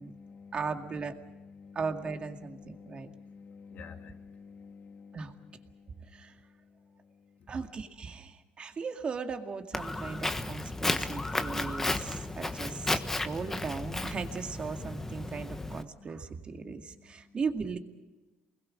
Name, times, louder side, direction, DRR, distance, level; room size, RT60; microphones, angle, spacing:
voice 1, 0.0-7.7 16.0-16.1 16.6-17.4, left 5 dB, 50° left, 2.3 m, -51 dB
voice 2, 0.5-1.2 1.7-3.1 5.1-5.3 6.1-6.3 7.5-17.8, right 5 dB, 30° right, 2.1 m, -37 dB
Walk footsteps, 9.7-15.8, left 2 dB, 10° left, 1.2 m, -33 dB
28.5 x 21.0 x 6.5 m
cardioid pair, 130°, 3 cm